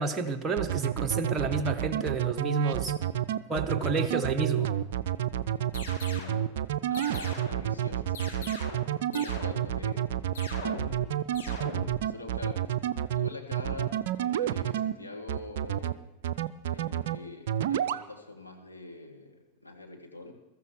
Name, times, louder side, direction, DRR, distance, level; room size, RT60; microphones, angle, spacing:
voice 1, 0.0-3.0 3.5-4.7, right 3 dB, 15° right, 4 dB, 1.1 m, -30 dB
sound 1, 0.6-14.9 15.3-15.9 16.2-17.2 17.5-18.0, right 11 dB, 55° right, 0.5 m, -29 dB
sound 2, 5.7-6.4 6.9-7.7 8.1-8.9 9.1-9.8 10.3-11.1 11.3-12.0, left 3 dB, 60° left, 4.0 m, -41 dB
voice 2, 6.0-6.5 6.9-10.0 10.6-16.1 16.7-20.3, left 2 dB, 90° left, 0 dB, 1.9 m, -45 dB
21.5 x 14.0 x 3.2 m, 1.0 s
figure-of-eight pair, 90°, 0 cm